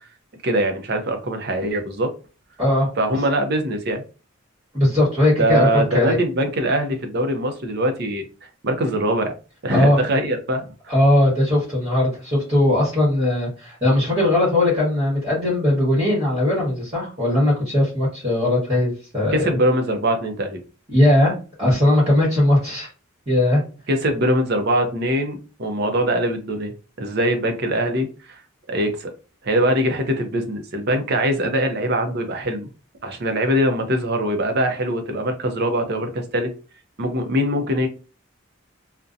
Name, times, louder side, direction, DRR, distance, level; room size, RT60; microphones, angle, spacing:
voice 1, 0.4-2.1 2.9-4.0 5.4-8.2 8.6-9.3 9.6-10.7 19.3-20.6 23.9-26.7 27.0-28.4 28.7-29.1 29.4-32.7 33.0-36.5 37.0-37.9, right 1 dB, 55° right, 6 dB, 0.6 m, -22 dB
voice 2, 2.6-2.9 4.7-6.2 9.7-10.0 10.9-19.6 20.9-22.9 23.3-23.6, left 1 dB, 30° right, -7 dB, 1.1 m, -19 dB
2.6 x 2.1 x 2.4 m, 0.33 s
head